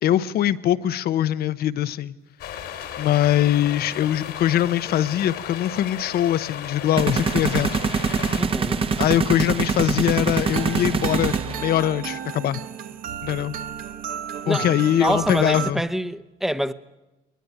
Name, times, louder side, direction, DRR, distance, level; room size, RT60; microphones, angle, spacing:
voice 1, 0.0-2.2 3.0-7.7 9.0-12.6 13.2-13.5 14.5-15.8, left 12 dB, 65° left, 0.9 m, -22 dB
sound 1, 2.4-8.4, left 9 dB, 80° left, 3.0 m, -35 dB
sound 2, 7.0-11.8, right 5 dB, 35° right, 1.1 m, -24 dB
voice 2, 8.3-8.9 14.4-14.7 14.9-16.7, equal, ahead, 0.8 m, -26 dB
sound 3, 10.4-15.7, right 9 dB, 60° right, 1.1 m, -33 dB
21.5 x 19.5 x 9.3 m
cardioid pair, 110°, 17 cm